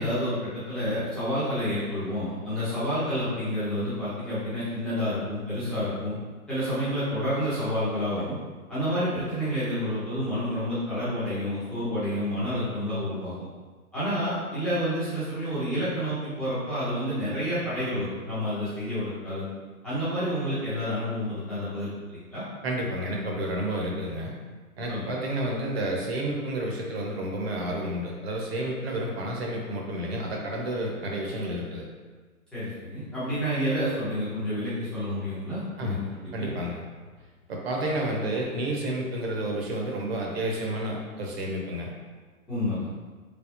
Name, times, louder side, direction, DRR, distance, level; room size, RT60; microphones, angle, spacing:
voice 1, 0.0-6.1 6.5-8.3 8.7-13.3 13.9-19.4 19.8-22.4 24.9-25.0 32.5-36.5 42.5-43.0, equal, ahead, -14 dB, 0.6 m, -29 dB
voice 2, 22.6-24.3 24.8-31.8 35.8-36.0 36.3-36.8 37.5-41.9, right 1 dB, 45° right, -1 dB, 0.9 m, -30 dB
4.0 x 3.5 x 2.6 m, 1.4 s
hypercardioid pair, 135°, 44 cm